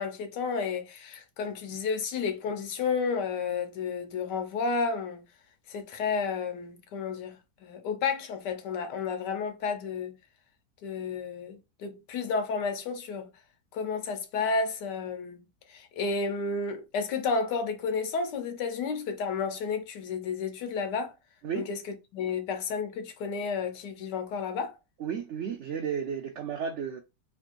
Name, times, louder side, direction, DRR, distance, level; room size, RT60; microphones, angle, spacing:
voice 1, 0.0-5.2 5.7-10.2 10.8-13.3 13.7-21.1 21.5-24.8, left 5 dB, 85° left, 1.4 m, -32 dB
voice 2, 25.0-27.0, right 7 dB, 90° right, 0.6 m, -33 dB
3.3 x 2.5 x 4.4 m
omnidirectional pair, 1.8 m